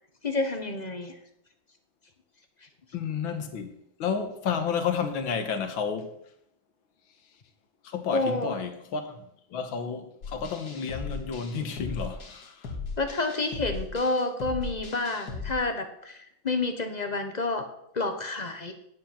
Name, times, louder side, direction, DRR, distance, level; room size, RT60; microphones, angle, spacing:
voice 1, 0.2-1.1 8.1-8.5 13.0-16.2 16.4-17.7 17.9-18.7, left 2 dB, 35° left, 0.7 m, -29 dB
voice 2, 2.9-3.7 4.0-6.2 7.8-12.8, left 6 dB, 75° left, 2.0 m, -31 dB
sound 1, 10.2-15.5, left 4 dB, 55° left, 2.1 m, -37 dB
10.5 x 7.9 x 5.8 m
omnidirectional pair, 2.2 m